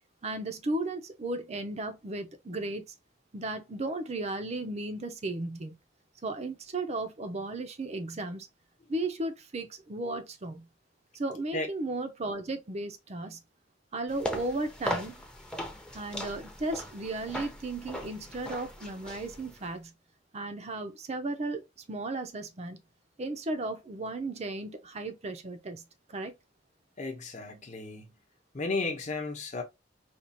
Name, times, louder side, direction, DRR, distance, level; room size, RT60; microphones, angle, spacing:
voice 1, 0.2-2.8 3.3-5.8 6.2-8.5 8.9-10.7 11.1-13.4 13.9-15.2 15.9-19.9 20.3-21.6 21.9-22.8 23.2-25.8 26.1-26.3, right 2 dB, 35° right, 0.6 m, -35 dB
sound 1, 14.1-19.7, equal, 5° left, 0.7 m, -39 dB
voice 2, 27.0-28.2 28.5-29.6, left 3 dB, 40° left, 0.9 m, -34 dB
4.4 x 2.4 x 2.7 m
head